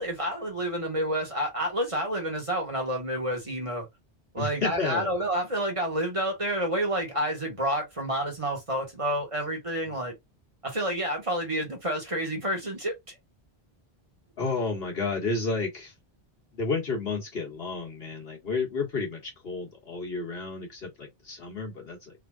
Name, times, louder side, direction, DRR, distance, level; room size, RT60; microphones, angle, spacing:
voice 1, 0.0-3.9 4.3-10.1 10.6-13.2, right 1 dB, 30° right, 1.3 m, -29 dB
voice 2, 4.4-5.1 14.4-15.9 16.5-22.1, left 4 dB, 70° left, 1.7 m, -31 dB
3.7 x 2.7 x 2.2 m
omnidirectional pair, 1.0 m